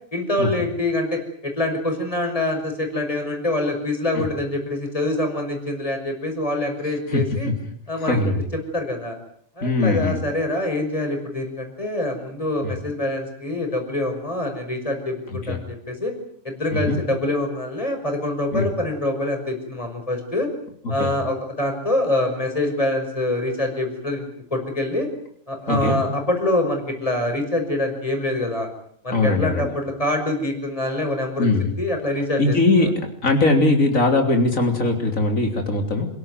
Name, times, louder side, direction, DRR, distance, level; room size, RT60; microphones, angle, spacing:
voice 1, 0.1-7.5 7.9-8.2 8.5-9.1 9.6-16.1 16.4-20.5 20.9-25.1 25.5-28.7 29.0-31.5 31.8-32.9, left 1 dB, 25° left, 4 dB, 5.8 m, -25 dB
voice 2, 8.0-8.4 9.6-10.2 12.6-12.7 15.5-15.6 16.7-17.0 18.5-18.7 20.9-21.1 25.7-26.0 29.1-29.7 31.4-31.7 32.4-33.0 33.2-36.1, left 2 dB, 70° left, 4 dB, 3.9 m, -20 dB
28.0 x 17.0 x 9.3 m, 0.66 s
omnidirectional pair, 1.4 m